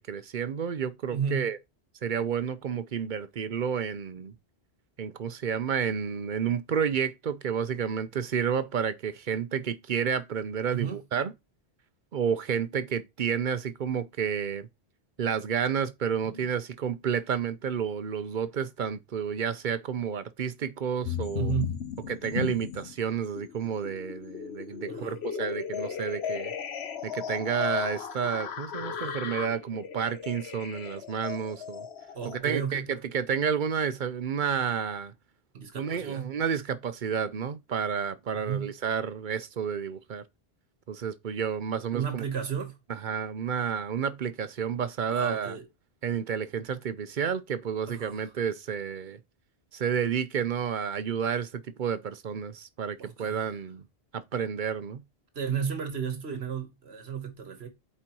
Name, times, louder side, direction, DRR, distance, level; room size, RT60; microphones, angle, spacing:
voice 1, 0.1-1.6 2.0-4.3 5.0-11.3 12.1-14.7 15.2-21.5 22.1-26.5 27.0-31.9 32.4-35.1 35.7-40.2 40.9-42.2 43.0-45.6 46.0-49.2 49.7-53.9 54.1-55.0, right 7 dB, 55° right, 0.7 m, -30 dB
voice 2, 1.1-1.5 10.7-11.0 16.2-16.4 21.3-21.8 24.9-25.2 28.8-29.2 32.1-32.9 35.5-36.4 38.3-38.7 41.9-42.8 45.1-45.6 47.9-48.3 53.0-53.5 55.3-57.7, right 7 dB, 75° right, 1.4 m, -33 dB
sound 1, 21.0-22.9 23.3-32.4, left 7 dB, 75° left, 1.1 m, -35 dB
8.2 x 4.4 x 2.9 m
omnidirectional pair, 1.1 m